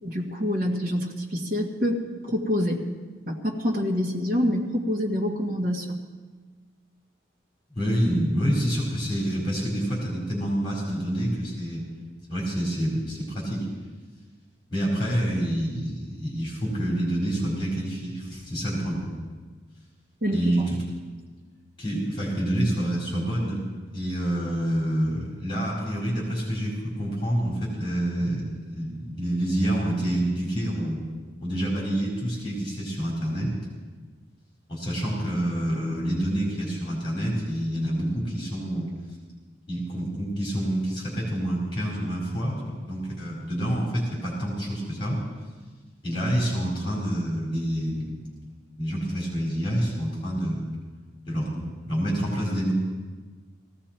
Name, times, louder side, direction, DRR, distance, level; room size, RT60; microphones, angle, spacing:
voice 1, 0.0-2.8 3.3-5.9 20.2-20.5, equal, 50° right, -2 dB, 1.7 m, -26 dB
voice 2, 7.7-11.8 12.3-13.7 14.7-19.1 20.3-20.8 21.8-23.6 23.9-31.0 31.4-33.5 34.7-38.9 39.7-45.2 46.0-48.2 48.7-50.6 51.3-52.7, equal, 25° left, -5 dB, 4.3 m, -27 dB
18.5 x 16.0 x 4.5 m, 1.4 s
head